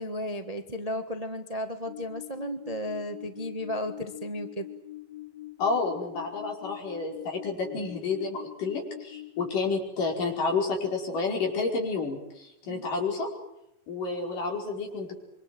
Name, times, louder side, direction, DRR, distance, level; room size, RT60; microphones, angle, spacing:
voice 1, 0.0-4.7 12.7-12.8, equal, 85° right, 8 dB, 0.3 m, -34 dB
sound 1, 1.8-9.5, left 16 dB, 55° left, 4.1 m, -44 dB
voice 2, 5.6-13.3 13.9-15.2, left 4 dB, 85° left, 0 dB, 6.8 m, -30 dB
26.5 x 24.5 x 7.8 m, 0.80 s
omnidirectional pair, 3.7 m